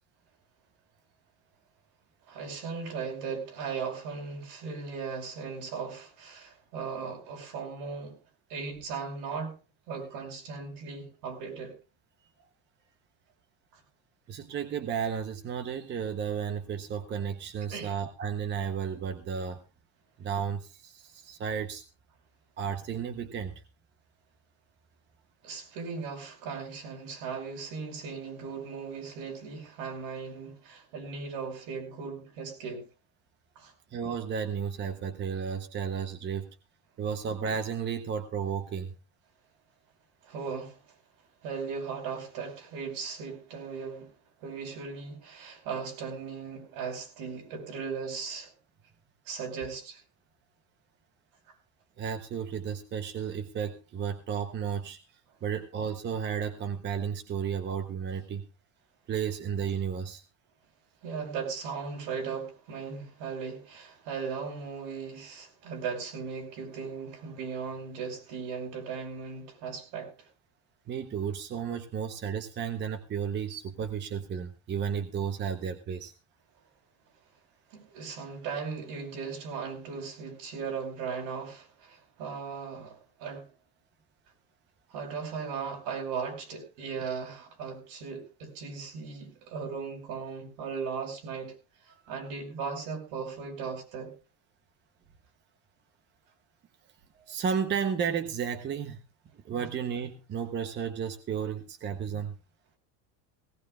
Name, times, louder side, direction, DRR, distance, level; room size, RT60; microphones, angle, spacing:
voice 1, 2.3-8.2 8.5-9.6 9.9-11.8 13.7-13.8 17.7-17.9 25.4-32.8 33.6-33.7 40.2-40.8 41.4-44.1 44.4-48.5 49.3-50.0 61.0-70.3 77.7-83.5 84.9-91.5 92.1-94.1, right 5 dB, 70° right, 5.2 m, -37 dB
voice 2, 14.3-19.6 20.2-21.8 22.6-23.5 33.9-36.5 37.0-38.9 52.0-55.0 55.4-58.4 59.1-60.2 70.9-76.1 97.2-99.0 99.3-102.3, right 7 dB, 25° right, 0.9 m, -33 dB
18.0 x 17.0 x 2.4 m
cardioid pair, 160°, 43 cm